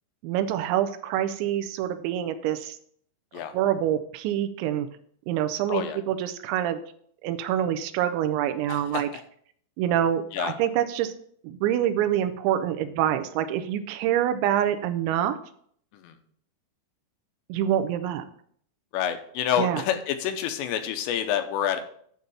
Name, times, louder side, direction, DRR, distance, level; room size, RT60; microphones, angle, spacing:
voice 1, 0.2-2.8 3.5-4.9 5.3-6.8 7.2-9.1 9.8-11.1 11.4-15.4 17.5-18.2 19.6-19.8, right 11 dB, 85° right, 10 dB, 2.9 m, -26 dB
voice 2, 8.7-9.2 10.3-10.5 16.0-16.1 18.9-21.8, left 9 dB, 80° left, 8 dB, 3.0 m, -28 dB
9.5 x 3.9 x 6.9 m, 0.62 s
omnidirectional pair, 5.2 m